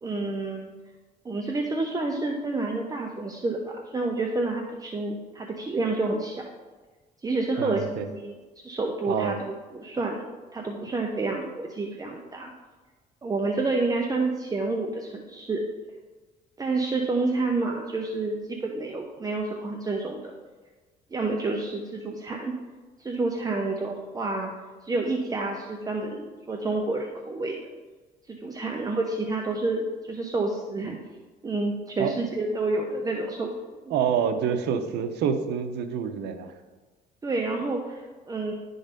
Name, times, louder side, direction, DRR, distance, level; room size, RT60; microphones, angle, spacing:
voice 1, 0.0-0.7 1.2-6.4 7.2-10.2 10.5-12.5 13.2-15.6 16.6-20.3 21.1-22.5 23.0-24.5 24.8-27.6 28.3-31.0 31.4-33.5 33.8-33.9 37.2-38.5, right 3 dB, 20° right, 1 dB, 0.9 m, -29 dB
voice 2, 7.6-8.1 9.1-9.4 32.0-32.2 33.9-36.5, right 7 dB, 80° right, 7 dB, 0.9 m, -27 dB
11.0 x 4.0 x 5.1 m, 1.3 s
cardioid pair, 110°, 17 cm